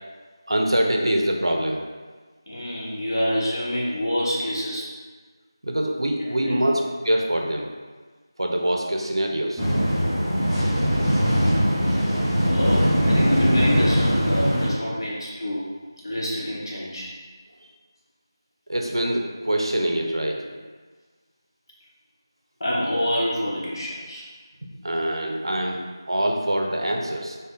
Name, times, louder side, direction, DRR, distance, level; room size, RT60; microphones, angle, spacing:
voice 1, 0.5-1.8 5.6-7.7 8.4-9.6 18.7-20.6 24.8-27.4, right 1 dB, 85° right, 1 dB, 0.5 m, -24 dB
voice 2, 2.5-4.9 6.2-6.6 12.5-15.7 16.0-17.1 22.6-24.2, equal, 65° left, -5 dB, 0.9 m, -26 dB
sound 1, 9.6-14.7, equal, 5° left, 0.5 m, -21 dB
3.5 x 2.1 x 2.4 m, 1.4 s
figure-of-eight pair, 170°, 2 cm